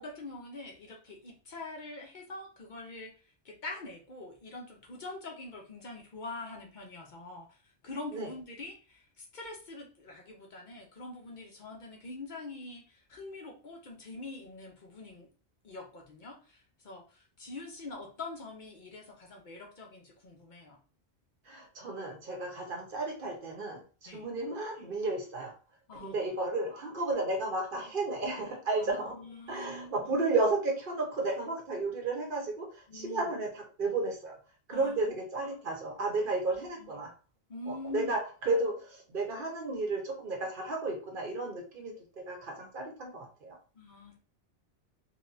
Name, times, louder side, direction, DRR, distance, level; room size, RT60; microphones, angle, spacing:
voice 1, 0.0-15.3 15.6-20.8 24.1-24.3 25.9-26.3 28.8-30.1 32.9-33.3 34.7-35.0 36.5-37.0 37.5-38.1 43.7-44.2, left 2 dB, 50° left, 1 dB, 0.8 m, -44 dB
voice 2, 21.5-25.5 26.0-29.2 29.5-34.4 34.7-37.1 37.7-43.6, right 2 dB, 55° right, 2 dB, 0.9 m, -33 dB
4.0 x 2.2 x 2.5 m, 0.37 s
omnidirectional pair, 1.1 m